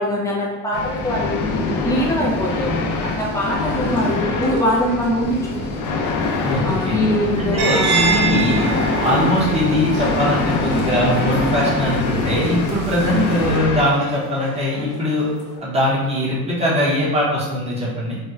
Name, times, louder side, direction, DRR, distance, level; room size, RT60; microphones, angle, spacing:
voice 1, 0.0-1.5 1.8-5.7 6.6-8.2 13.1-13.4, left 1 dB, 10° left, -5 dB, 0.4 m, -23 dB
sound 1, 0.7-13.8, left 3 dB, 70° left, 0.5 m, -24 dB
sound 2, 3.1-15.6, equal, 35° left, 1.0 m, -40 dB
voice 2, 6.4-7.0 7.4-8.7 9.0-15.3 15.6-18.2, equal, 20° right, -5 dB, 0.8 m, -21 dB
sound 3, 7.6-13.6, right 4 dB, 55° right, 0.7 m, -26 dB
4.2 x 2.1 x 2.3 m, 1.1 s
cardioid pair, 150°, 33 cm